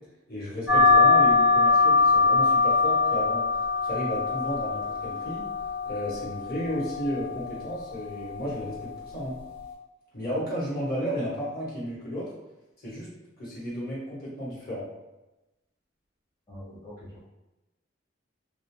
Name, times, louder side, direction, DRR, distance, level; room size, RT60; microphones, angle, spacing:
voice 1, 0.3-3.5 3.8-5.4 5.8-9.4 10.1-12.2 12.8-13.1 13.4-14.9, equal, 50° left, -8 dB, 1.1 m, -33 dB
sound 1, 0.7-9.7, left 4 dB, 80° left, 1.3 m, -23 dB
voice 2, 16.5-17.2, equal, 15° left, -11 dB, 0.7 m, -44 dB
2.3 x 2.2 x 3.0 m, 1.0 s
head